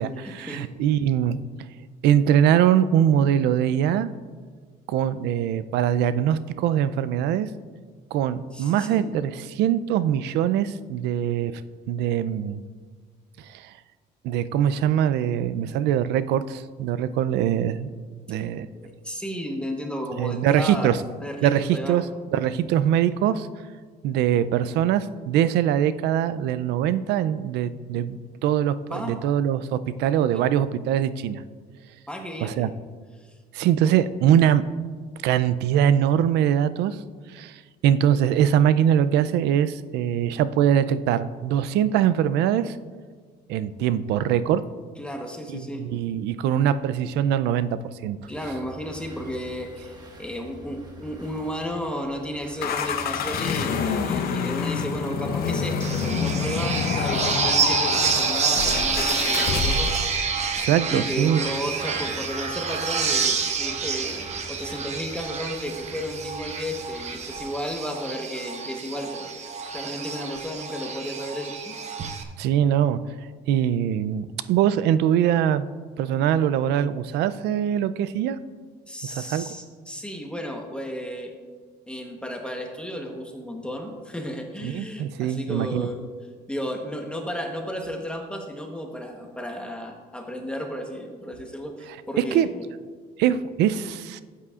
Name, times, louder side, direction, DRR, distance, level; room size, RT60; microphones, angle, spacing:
voice 1, 0.0-1.7 2.0-4.1 4.9-7.5 8.1-11.5 11.9-12.6 13.4-13.7 14.2-17.9 18.3-18.7 20.2-21.0 21.4-23.5 24.0-31.4 32.4-32.7 33.5-34.6 35.2-37.0 37.3-42.8 43.5-44.6 45.5-48.2 60.5-61.4 72.4-73.0 73.5-75.7 76.0-78.4 79.1-79.4 84.6-85.9 92.2-92.5 93.2-94.2, right 10 dB, 80° right, 15 dB, 0.4 m, -22 dB
voice 2, 8.5-9.1 18.7-20.9 21.2-22.0 28.9-29.2 30.3-30.5 32.1-32.7 45.0-45.9 48.3-59.9 60.9-69.3 69.7-72.0 78.9-81.3 81.9-86.0 86.5-92.6, equal, 5° left, 2 dB, 1.0 m, -33 dB
sound 1, 48.2-67.4, right 2 dB, 25° right, 1.5 m, -45 dB
sound 2, 52.6-60.2, left 6 dB, 65° left, 0.8 m, -27 dB
sound 3, 55.8-72.2, right 5 dB, 40° right, 0.9 m, -28 dB
13.0 x 8.4 x 2.4 m, 1.6 s
cardioid pair, 110°, 17 cm